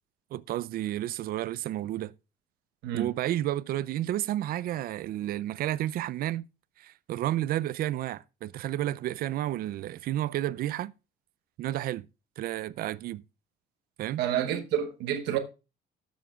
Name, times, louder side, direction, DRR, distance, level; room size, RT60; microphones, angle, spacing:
voice 1, 0.3-2.1 2.9-6.5 6.8-10.9 11.6-12.0 12.4-13.2 14.0-14.2, right 13 dB, 60° right, 0.4 m, -31 dB
voice 2, 14.2-15.4, right 10 dB, 85° right, 0.9 m, -29 dB
17.0 x 7.3 x 2.3 m
cardioid pair, 110°, 17 cm